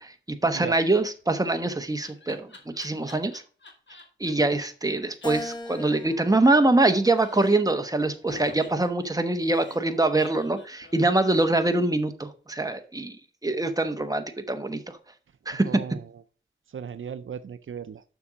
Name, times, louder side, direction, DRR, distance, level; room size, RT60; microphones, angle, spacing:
voice 1, 0.0-3.3 4.2-13.2 13.4-15.0 15.5-15.8, right 2 dB, 20° right, 7 dB, 1.1 m, -24 dB
Laughter, 1.2-4.3 4.6-4.7 4.9-5.0 5.2-5.3 5.6-6.9 7.1-7.8 8.3-12.0, left 2 dB, 65° left, 2.3 m, -48 dB
Keyboard (musical), 5.2-7.7 8.3-9.5, left 1 dB, 20° left, 1.1 m, -40 dB
voice 2, 15.5-16.2 16.7-18.0, right 7 dB, 85° right, 13 dB, 0.5 m, -37 dB
7.0 x 6.1 x 4.9 m, 0.38 s
wide cardioid pair, 65°, 20 cm